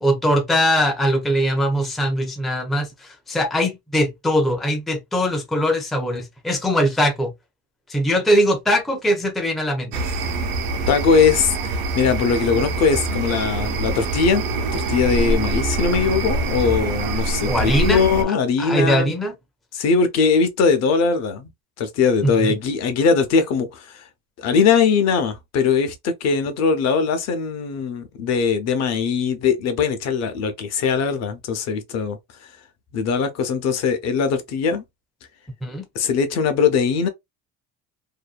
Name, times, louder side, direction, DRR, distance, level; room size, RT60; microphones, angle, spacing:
voice 1, 0.0-7.3 7.9-10.0 17.5-18.0 18.3-19.3 22.2-22.5 35.6-35.9, equal, ahead, 0.4 m, -21 dB
sound 1, 9.9-18.2, right 2 dB, 85° right, 0.8 m, -24 dB
voice 2, 10.9-14.4 14.7-19.1 19.7-21.5 21.8-24.0 24.4-32.2 32.9-34.8 35.9-37.1, left 5 dB, 55° left, 0.7 m, -20 dB
2.7 x 2.2 x 2.4 m
cardioid pair, 140°, 31 cm